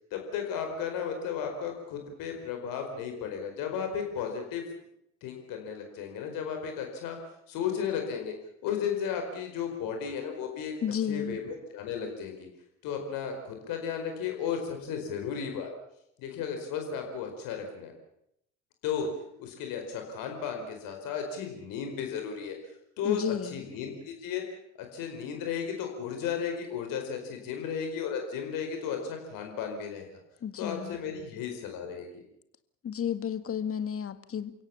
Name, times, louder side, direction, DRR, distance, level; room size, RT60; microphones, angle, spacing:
voice 1, 0.1-4.7 5.2-7.2 7.5-8.3 8.6-10.7 11.1-12.5 12.8-15.7 16.2-17.9 18.8-19.1 19.4-22.6 23.0-24.4 24.8-30.1 30.6-32.2, left 7 dB, 60° left, 4 dB, 4.8 m, -34 dB
voice 2, 10.8-11.4 23.0-23.6 30.4-31.0 32.8-34.5, left 8 dB, 35° left, 12 dB, 2.0 m, -32 dB
30.0 x 17.0 x 7.2 m, 0.76 s
figure-of-eight pair, 60°, 37 cm